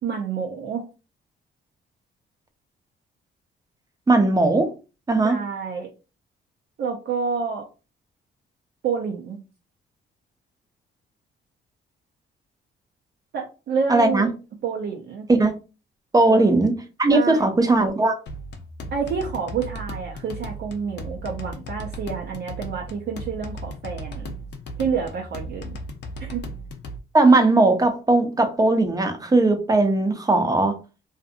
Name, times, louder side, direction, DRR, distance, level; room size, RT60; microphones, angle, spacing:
voice 1, 0.0-0.8 5.2-5.9 6.8-7.7 8.8-9.4 13.3-14.3 14.6-15.3 16.3-16.6 17.1-17.5 18.9-24.3 24.8-25.8 26.2-26.4, right 6 dB, 60° right, 0.6 m, -28 dB
voice 2, 4.1-4.7 5.1-5.4 13.9-14.3 15.3-15.5 16.1-18.2 27.1-30.7, right 2 dB, 20° right, 0.6 m, -18 dB
sound 1, 18.3-27.0, equal, 60° left, 0.6 m, -36 dB
2.6 x 2.5 x 2.4 m
cardioid pair, 90°, 20 cm